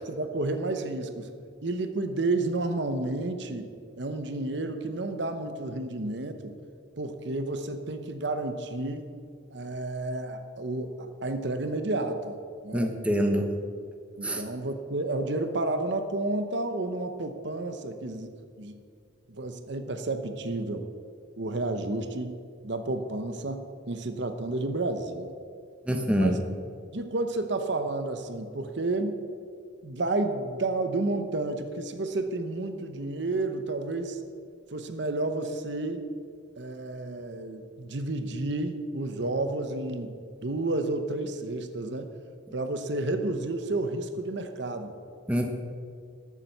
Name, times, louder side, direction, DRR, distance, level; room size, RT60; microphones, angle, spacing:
voice 1, 0.0-1.3 1.6-3.7 4.0-6.5 7.0-9.1 9.5-12.4 12.6-12.9 14.2-18.8 19.3-20.9 21.4-25.3 26.1-26.4 26.9-29.2 29.8-34.2 34.7-36.1 36.6-40.2 40.4-42.1 42.5-44.9, right 2 dB, 60° right, 7 dB, 0.9 m, -31 dB
voice 2, 12.7-13.6 14.2-14.4 25.9-26.4 45.3-45.6, equal, 5° right, 3 dB, 0.9 m, -25 dB
13.5 x 7.4 x 6.7 m, 2.2 s
head